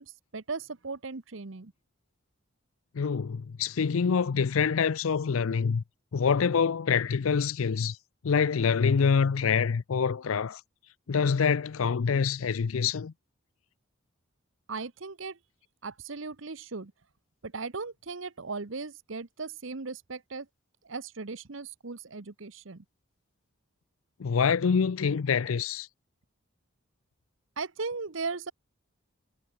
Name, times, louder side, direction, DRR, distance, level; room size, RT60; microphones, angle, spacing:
voice 1, 0.0-1.7 14.7-15.4 15.8-16.9 17.4-20.5 20.8-22.8 27.6-28.5, right 4 dB, 70° right, 1.0 m, -37 dB
voice 2, 2.9-5.8 6.1-8.0 8.2-10.6 11.1-13.1 24.2-25.9, left 6 dB, 85° left, 0.5 m, -26 dB
head